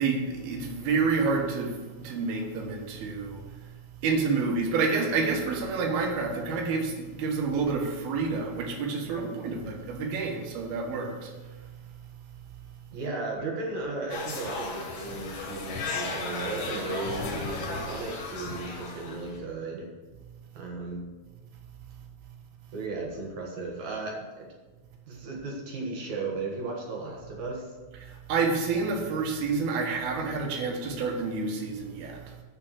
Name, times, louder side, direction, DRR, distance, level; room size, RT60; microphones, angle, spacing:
voice 1, 0.0-3.7 4.0-11.7 28.0-32.4, right 4 dB, 90° right, 2 dB, 3.4 m, -29 dB
voice 2, 12.9-19.9 20.5-21.1 22.7-24.5 25.1-27.7, right 3 dB, 60° right, -1 dB, 2.7 m, -35 dB
sound 1, 14.1-19.4, left 3 dB, 90° left, 3.6 m, -35 dB
8.6 x 6.7 x 6.4 m, 1.3 s
omnidirectional pair, 4.2 m